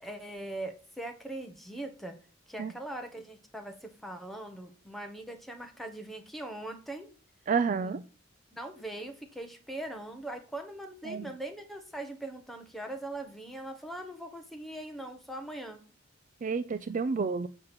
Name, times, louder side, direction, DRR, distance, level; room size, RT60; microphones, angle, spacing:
voice 1, 0.0-2.2 2.5-7.1 7.8-7.9 8.5-15.8, right 1 dB, ahead, 4 dB, 1.3 m, -41 dB
voice 2, 7.5-8.0 11.1-11.3 16.4-17.5, right 5 dB, 40° right, 13 dB, 0.4 m, -30 dB
7.1 x 5.2 x 5.8 m, 0.39 s
head